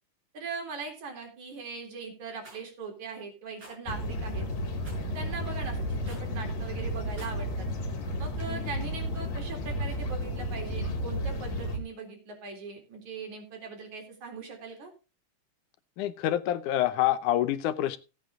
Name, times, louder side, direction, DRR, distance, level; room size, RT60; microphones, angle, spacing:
voice 1, 0.3-4.5 5.1-7.7 8.2-14.9, right 4 dB, 70° right, 3 dB, 4.9 m, -40 dB
Rattle, 2.4-2.6 3.6-3.8 4.8-5.1 6.0-6.3 7.0-7.4, right 2 dB, 30° right, 6.0 m, -49 dB
sound 1, 3.9-11.8, equal, 60° left, 3.6 m, -32 dB
voice 2, 16.0-18.0, left 13 dB, 85° left, 12 dB, 2.3 m, -27 dB
16.5 x 8.7 x 3.7 m, 0.31 s
omnidirectional pair, 3.5 m